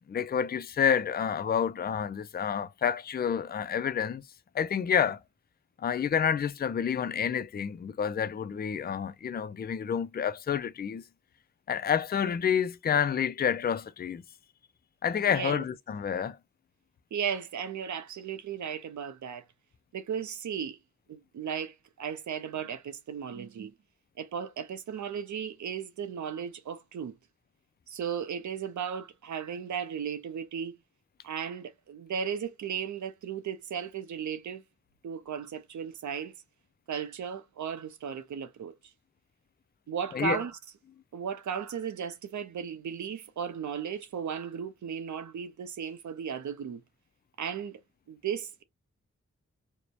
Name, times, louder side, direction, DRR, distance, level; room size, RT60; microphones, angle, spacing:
voice 1, 0.1-4.2 4.5-5.2 5.8-11.0 11.7-14.2 15.0-16.4 40.1-40.4, left 7 dB, 35° left, 0.4 m, -29 dB
voice 2, 15.3-15.6 17.1-19.4 19.9-20.8 21.1-23.7 24.2-27.2 27.9-30.8 31.2-34.6 35.0-36.3 36.9-38.7 39.9-40.6 41.1-46.8 47.4-47.8 48.1-48.6, right 7 dB, 70° right, 0.5 m, -35 dB
2.7 x 2.0 x 2.3 m
cardioid pair, 55°, 30 cm